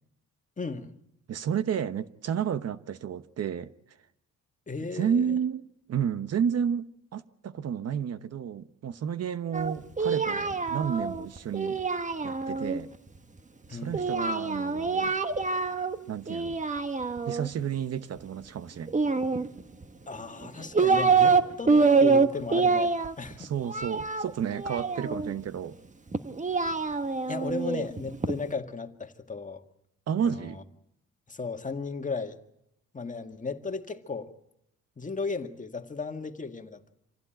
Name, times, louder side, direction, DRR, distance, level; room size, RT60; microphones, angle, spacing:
voice 1, 0.6-0.9 4.7-5.4 13.7-13.9 20.1-23.5 27.3-29.6 30.2-30.5 31.3-32.4 32.9-34.3 35.0-36.9, left 4 dB, 25° left, 1.9 m, -35 dB
voice 2, 1.3-3.7 4.9-5.6 5.9-6.9 7.1-11.8 12.2-12.9 13.7-15.1 16.1-16.6 17.3-18.9 23.4-25.8 30.1-30.6, right 8 dB, 55° right, 1.1 m, -31 dB
Singing, 9.5-12.8 13.9-16.0 16.3-17.5 18.9-19.8 20.4-21.4 21.7-25.3 26.1-28.4, right 4 dB, 25° right, 1.5 m, -26 dB
26.5 x 16.0 x 9.1 m
cardioid pair, 90°, 30 cm